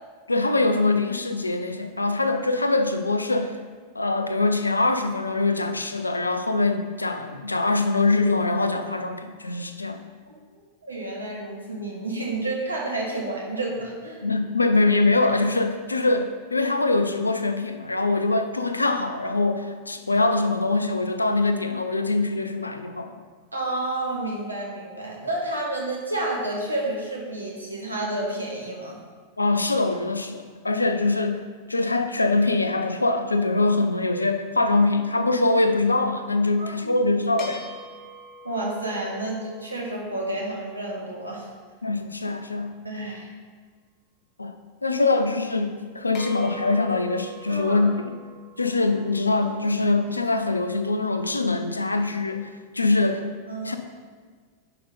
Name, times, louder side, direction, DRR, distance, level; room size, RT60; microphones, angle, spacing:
voice 1, 0.3-3.6 3.9-10.0 14.2-23.2 29.4-31.4 31.7-37.7 41.8-42.8 44.4-44.6 44.8-48.2 48.6-53.3 53.6-53.8, left 2 dB, 80° left, 8 dB, 0.6 m, -23 dB
voice 2, 10.8-14.2 23.5-29.0 36.6-37.0 38.4-41.5 42.8-43.3 44.9-45.0 47.5-47.9 53.5-53.8, right 2 dB, 80° right, -2 dB, 1.8 m, -30 dB
sound 1, 37.4-41.1 46.1-50.5, equal, 40° left, 1.6 m, -43 dB
10.0 x 5.5 x 3.9 m, 1.5 s
figure-of-eight pair, 90°, 0 cm